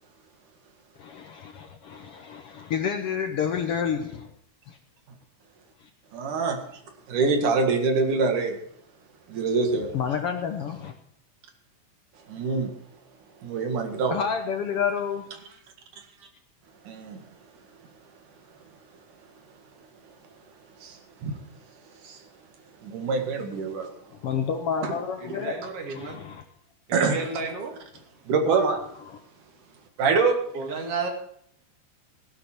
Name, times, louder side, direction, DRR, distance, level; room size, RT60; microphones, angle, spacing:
voice 1, 1.0-1.5 1.8-4.3 4.7-4.8 9.9-10.9 14.1-15.3 24.2-25.6 25.9-26.4 29.1-29.2, left 7 dB, 65° left, 6 dB, 1.5 m, -29 dB
voice 2, 6.1-6.6 7.1-8.6 9.3-9.9 12.3-12.7 13.4-14.2 16.9-17.2 20.8-21.0 21.2-21.4 22.0-22.2 22.8-23.9 24.8-24.9 26.9-27.2 28.3-28.8 30.0-30.4, right 4 dB, 80° right, 4 dB, 3.4 m, -24 dB
voice 3, 25.2-26.2 26.9-27.7 30.5-31.1, right 4 dB, 50° right, 3 dB, 3.1 m, -32 dB
16.5 x 11.0 x 4.5 m, 0.67 s
omnidirectional pair, 3.5 m